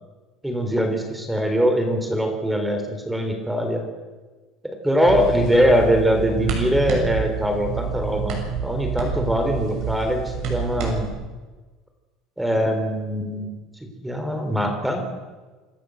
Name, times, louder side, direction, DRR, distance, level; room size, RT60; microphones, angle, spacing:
voice 1, 0.4-3.8 4.6-11.1 12.4-13.5 13.8-15.1, equal, 5° right, 5 dB, 3.9 m, -22 dB
sound 1, 5.1-11.1, right 6 dB, 60° right, 7.0 m, -28 dB
26.5 x 13.5 x 7.9 m, 1.3 s
cardioid pair, 135°, 0 cm